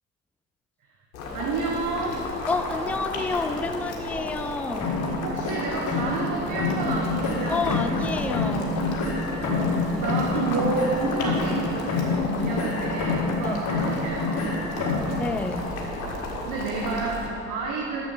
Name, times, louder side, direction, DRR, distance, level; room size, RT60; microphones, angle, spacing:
Boiling, 1.1-17.3, left 2 dB, 75° left, 1.7 m, -33 dB
voice 1, 1.3-2.3 5.2-7.9 9.5-15.1 16.4-18.0, right 3 dB, 50° right, -1 dB, 1.4 m, -30 dB
voice 2, 2.5-5.0 7.5-8.8 13.4-13.6 15.2-15.7, left 3 dB, 5° left, 9 dB, 0.4 m, -29 dB
sound 1, 4.8-6.3 6.6-8.1 8.3-11.6 11.9-13.4 13.7-15.1, left 3 dB, 45° left, 2.6 m, -27 dB
10.0 x 7.9 x 6.0 m, 2.8 s
figure-of-eight pair, 55°, 41 cm